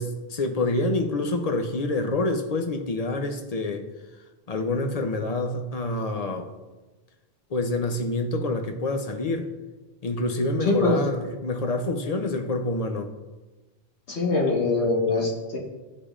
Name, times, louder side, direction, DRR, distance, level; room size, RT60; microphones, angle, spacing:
voice 1, 0.0-3.8 4.5-6.5 7.5-9.5 10.0-13.1, left 2 dB, 45° left, 5 dB, 0.6 m, -27 dB
voice 2, 10.6-11.0 14.1-15.6, left 3 dB, 80° left, -2 dB, 1.6 m, -23 dB
11.5 x 5.0 x 2.5 m, 1.2 s
omnidirectional pair, 1.1 m